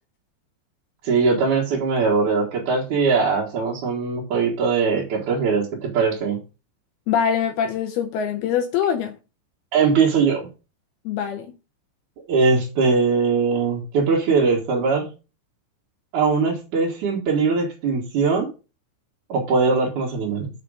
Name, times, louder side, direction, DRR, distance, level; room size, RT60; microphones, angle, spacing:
voice 1, 1.0-6.4 9.7-10.5 12.3-15.1 16.1-18.5 19.3-20.5, right 4 dB, 55° right, 2.4 m, -21 dB
voice 2, 7.1-9.2 11.1-11.5, left 8 dB, 80° left, 2.3 m, -23 dB
6.7 x 5.9 x 5.0 m
omnidirectional pair, 5.4 m